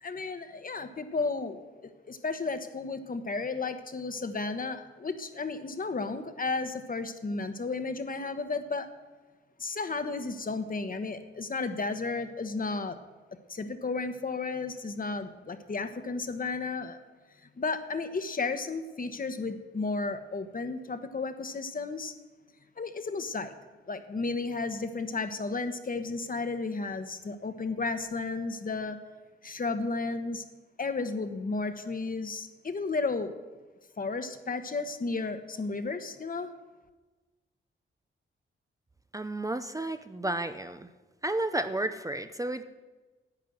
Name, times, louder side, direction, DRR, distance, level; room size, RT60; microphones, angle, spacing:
voice 1, 0.0-1.6 2.1-8.9 9.6-13.0 13.5-17.0 17.6-22.1 22.8-23.5 23.9-29.0 29.4-30.4 30.8-33.3 34.0-36.5, left 3 dB, 40° left, 9 dB, 1.2 m, -33 dB
voice 2, 39.1-40.9 41.2-42.6, right 2 dB, 15° right, 9 dB, 0.6 m, -32 dB
11.0 x 9.5 x 8.0 m, 1.2 s
cardioid pair, 80°, 21 cm